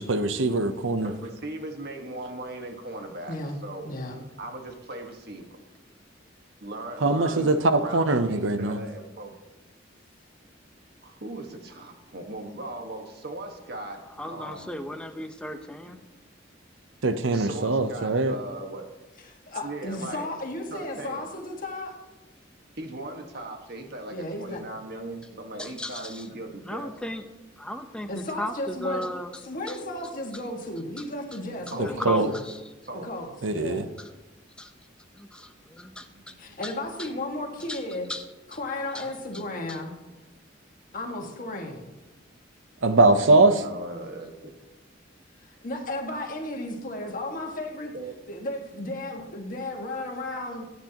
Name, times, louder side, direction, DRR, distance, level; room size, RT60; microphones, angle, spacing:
voice 1, 0.0-1.1 7.0-8.8 17.0-18.4 31.8-32.3 33.4-33.8 42.8-43.6, right 2 dB, 85° right, 0.8 m, -22 dB
voice 2, 1.0-3.4 3.6-3.8 4.4-5.5 6.6-9.4 11.0-14.8 17.3-18.9 19.6-20.3 20.7-21.2 22.7-26.9 31.7-31.9 32.9-33.1 43.6-44.5 47.9-48.1, right 2 dB, 55° right, 1.6 m, -38 dB
voice 3, 3.3-3.6 3.8-4.2 19.2-21.9 24.1-24.6 28.1-29.1 29.4-32.4 33.0-33.9 36.4-38.1 38.5-39.9 40.9-41.9 45.4-47.9 48.3-50.7, left 1 dB, 45° left, 1.9 m, -34 dB
voice 4, 14.2-16.0 25.6-26.3 26.7-27.2 27.6-29.3 29.7-29.8 31.0-31.1 31.7-32.7 34.0-34.1 34.6-34.7 35.1-36.3 36.6-36.7 37.0-37.1 37.7-37.8 38.1-38.2 38.9-39.1 39.7-39.8, left 1 dB, 5° left, 0.8 m, -35 dB
22.0 x 9.6 x 3.0 m
head